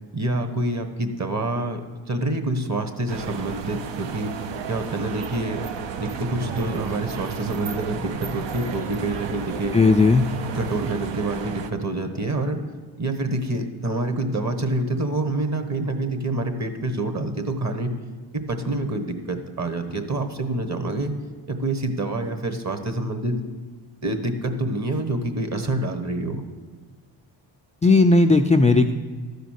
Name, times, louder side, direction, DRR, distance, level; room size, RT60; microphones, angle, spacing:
voice 1, 0.1-1.8 2.1-4.3 4.7-5.6 6.0-9.8 10.5-12.6 13.0-17.9 18.3-21.1 21.5-23.4 24.0-26.4, right 2 dB, 35° right, 8 dB, 1.3 m, -27 dB
sound 1, 3.1-11.7, right 6 dB, 70° right, 0.8 m, -33 dB
voice 2, 9.7-10.3 27.8-28.9, left 3 dB, 15° left, 4 dB, 0.3 m, -16 dB
12.5 x 5.0 x 6.5 m, 1.4 s
cardioid pair, 65°, 45 cm